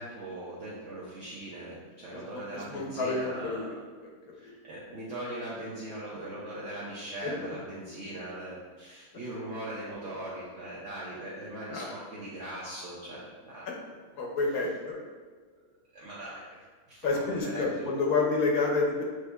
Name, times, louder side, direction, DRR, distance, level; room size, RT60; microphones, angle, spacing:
voice 1, 0.0-3.7 4.3-13.7 15.9-18.3, right 1 dB, 60° right, -7 dB, 0.9 m, -40 dB
voice 2, 2.3-3.8 4.4-4.5 7.2-7.5 11.7-11.9 13.7-13.8 14.1-15.0 17.0-19.0, left 3 dB, 75° left, -1 dB, 1.1 m, -29 dB
6.2 x 2.7 x 2.2 m, 1.5 s
omnidirectional pair, 1.6 m